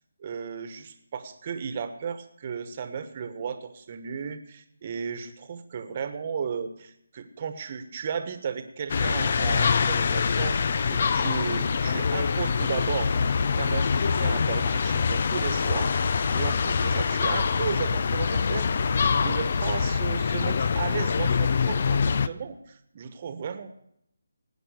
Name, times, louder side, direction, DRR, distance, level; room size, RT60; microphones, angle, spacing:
voice 1, 0.2-10.6 10.9-13.1 13.6-23.8, right 6 dB, 35° right, 10 dB, 1.3 m, -34 dB
sound 1, 8.9-22.3, left 5 dB, 45° left, 0.5 m, -24 dB
18.5 x 9.2 x 6.5 m, 0.73 s
figure-of-eight pair, 165°, 0 cm